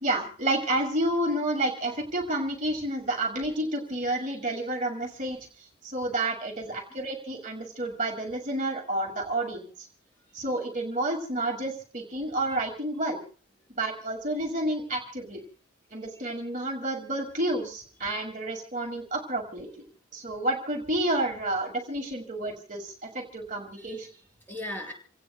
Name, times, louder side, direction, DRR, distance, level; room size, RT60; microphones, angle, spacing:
voice 1, 0.0-5.4 5.8-9.6 10.3-13.2 13.8-15.4 15.9-19.7 20.1-24.1, right 1 dB, 35° right, 2 dB, 2.1 m, -30 dB
voice 2, 10.3-10.6 12.5-12.6 16.1-16.2 23.7-24.9, left 1 dB, 10° left, 0 dB, 4.2 m, -41 dB
28.5 x 17.0 x 2.2 m, 0.39 s
head